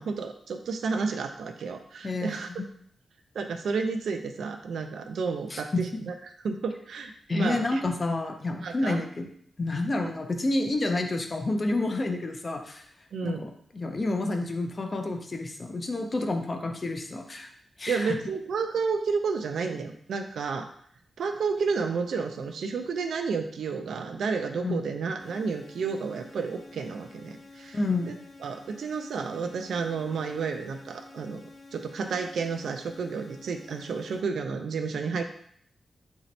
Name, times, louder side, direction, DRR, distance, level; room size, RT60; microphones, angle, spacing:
voice 1, 0.0-2.5 3.3-6.1 6.4-7.8 8.6-9.0 10.0-10.1 13.1-13.4 17.9-20.7 21.2-27.8 28.0-28.2 28.4-31.4 31.7-35.2, right 5 dB, 80° right, 6 dB, 0.4 m, -31 dB
voice 2, 2.0-2.6 5.5-5.8 7.3-9.3 9.6-12.9 13.2-17.5 17.8-18.2 24.6-24.8 27.7-28.2, left 2 dB, 30° left, 5 dB, 0.4 m, -29 dB
sound 1, 25.2-34.2, left 3 dB, 50° left, 0.8 m, -50 dB
3.0 x 2.7 x 4.1 m, 0.64 s
wide cardioid pair, 165°, 0 cm